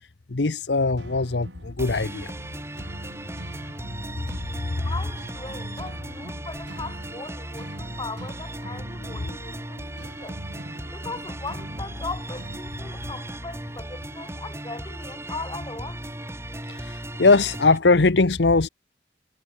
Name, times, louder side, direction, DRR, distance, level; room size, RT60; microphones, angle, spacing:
voice 1, 0.3-2.3 9.2-9.4 9.7-10.0 16.7-18.7, left 3 dB, 70° left, 0.9 m, -21 dB
sound 1, 1.0-12.6, right 1 dB, 75° right, 2.4 m, -44 dB
sound 2, 1.8-17.8, right 1 dB, 15° right, 5.0 m, -37 dB
voice 2, 4.8-10.4 10.9-16.0, left 3 dB, 25° left, 6.2 m, -38 dB
head